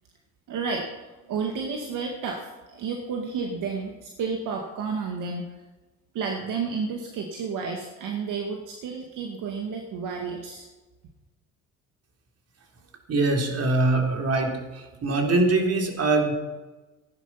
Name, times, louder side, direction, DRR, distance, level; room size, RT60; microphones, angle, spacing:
voice 1, 0.5-5.6 6.1-10.7, right 5 dB, 65° right, 2 dB, 2.0 m, -31 dB
voice 2, 13.1-16.3, right 2 dB, 45° right, 3 dB, 3.6 m, -23 dB
15.5 x 11.0 x 5.9 m, 1.2 s
supercardioid pair, 80°, 34 cm